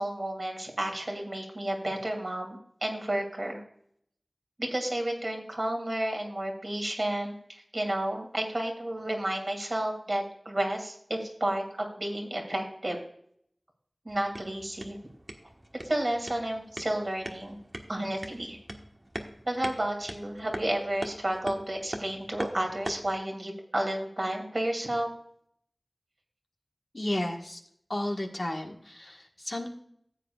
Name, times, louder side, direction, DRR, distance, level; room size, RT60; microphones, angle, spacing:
voice 1, 0.0-3.6 4.6-11.6 12.0-13.0 14.0-15.0 15.8-17.6 17.9-18.6 19.5-25.1, right 1 dB, 55° right, 2 dB, 2.6 m, -31 dB
sound 1, 14.1-23.2, right 1 dB, 40° right, 1.4 m, -42 dB
voice 2, 26.9-27.6 27.9-29.7, left 1 dB, 55° left, 2 dB, 1.5 m, -33 dB
15.0 x 7.8 x 2.4 m, 0.67 s
wide cardioid pair, 40°, 0 cm